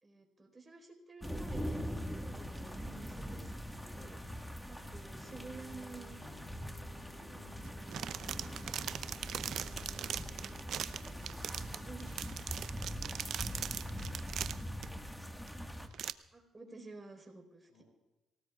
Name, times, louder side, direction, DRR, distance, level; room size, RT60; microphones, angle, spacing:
voice 1, 0.0-4.2 4.7-6.2 7.3-7.8 8.7-9.1 11.6-12.5 16.3-17.8, right 3 dB, 25° right, 3 dB, 4.5 m, -52 dB
sound 1, 1.2-15.9, equal, 5° left, 1.6 m, -42 dB
sound 2, 5.1-15.9, left 1 dB, 50° left, 3.3 m, -60 dB
voice 2, 6.9-7.7 10.9-12.1 12.6-14.1 17.7-17.8, left 2 dB, 80° left, 0 dB, 6.9 m, -64 dB
sound 3, 7.6-14.9 15.5-15.6 15.9-16.1, right 9 dB, 70° right, 0.6 m, -40 dB
25.5 x 18.0 x 2.4 m, 1.1 s
cardioid pair, 90°, 0 cm